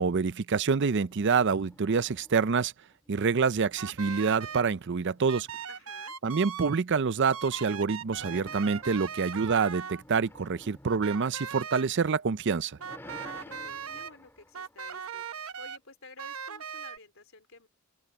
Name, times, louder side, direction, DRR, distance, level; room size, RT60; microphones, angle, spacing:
voice 1, 0.0-2.7 3.1-5.5 6.2-12.8, right 5 dB, 55° right, 0.5 m, -27 dB
sound 1, 0.9-2.6 2.9-5.7 8.0-12.1 12.5-15.6, left 1 dB, 10° left, 2.0 m, -53 dB
sound 2, 3.8-4.7 5.3-6.8 7.3-10.0 10.9-11.9 12.8-14.1 14.5-15.8 16.2-17.0, right 7 dB, 70° right, 1.0 m, -39 dB
voice 2, 5.7-6.2 13.0-15.3 15.6-17.7, left 3 dB, 60° left, 4.4 m, -52 dB
open air
head